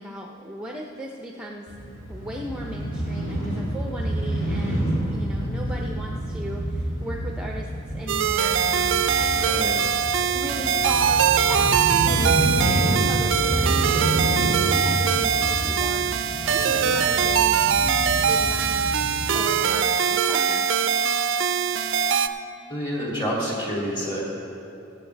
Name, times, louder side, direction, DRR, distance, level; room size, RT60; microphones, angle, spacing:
voice 1, 0.0-1.7 2.1-9.9 10.3-20.7, equal, 5° right, -1 dB, 0.6 m, -37 dB
Crow / Motorcycle, 1.7-19.5, right 1 dB, 70° left, 2.3 m, -28 dB
sound 1, 8.1-22.3, right 7 dB, 65° right, 0.4 m, -22 dB
Breathing, 9.2-9.9 10.5-13.0 13.2-14.0 14.4-15.0 15.3-15.9 16.5-17.0, left 1 dB, 55° left, 1.7 m, -42 dB
voice 2, 9.4-9.8 22.7-24.3, equal, 25° left, -5 dB, 2.8 m, -28 dB
23.0 x 8.0 x 3.4 m, 2.8 s
head